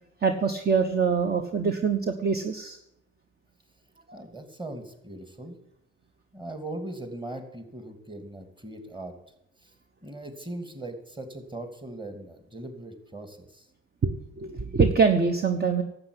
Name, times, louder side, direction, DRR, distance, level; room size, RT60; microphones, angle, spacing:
voice 1, 0.2-2.8 4.1-4.2 14.0-15.8, right 5 dB, 30° right, 7 dB, 1.2 m, -24 dB
voice 2, 4.1-5.6 6.3-9.1 9.6-9.7 10.0-13.7, right 1 dB, 15° right, 7 dB, 2.7 m, -39 dB
12.0 x 8.0 x 10.0 m, 0.80 s
cardioid pair, 90°, 30 cm